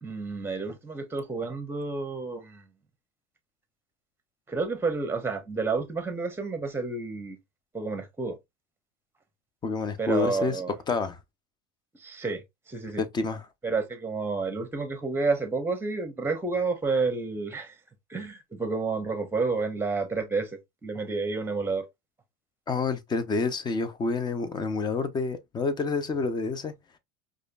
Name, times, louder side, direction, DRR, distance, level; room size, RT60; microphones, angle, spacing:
voice 1, 0.0-2.6 4.5-7.4 7.7-8.4 10.0-10.7 12.0-13.0 13.6-17.8 18.1-20.5 20.8-21.9, right 4 dB, 10° right, 1.0 m, -30 dB
voice 2, 9.6-10.6 10.9-11.2 13.0-13.4 22.7-26.7, left 4 dB, 25° left, 0.6 m, -28 dB
4.9 x 2.5 x 2.3 m
supercardioid pair, 120°, 18 cm